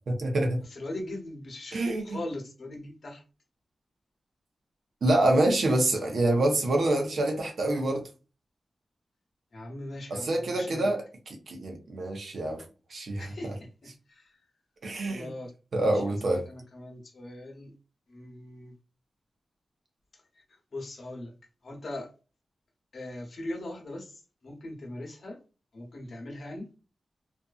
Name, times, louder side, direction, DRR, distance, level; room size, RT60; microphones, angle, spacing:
voice 1, 0.1-0.6 1.7-2.0 5.0-8.0 10.1-12.6 12.9-13.2 14.8-15.3 15.7-16.4, right 1 dB, 70° right, 0.7 m, -26 dB
voice 2, 0.6-3.2 9.5-10.9 13.2-14.4 15.1-15.5 15.8-17.7 18.1-18.7 20.7-21.3 21.6-22.1 22.9-25.4 25.7-26.7, left 1 dB, 60° left, 0.8 m, -40 dB
2.6 x 2.4 x 2.3 m
wide cardioid pair, 140°, 0 cm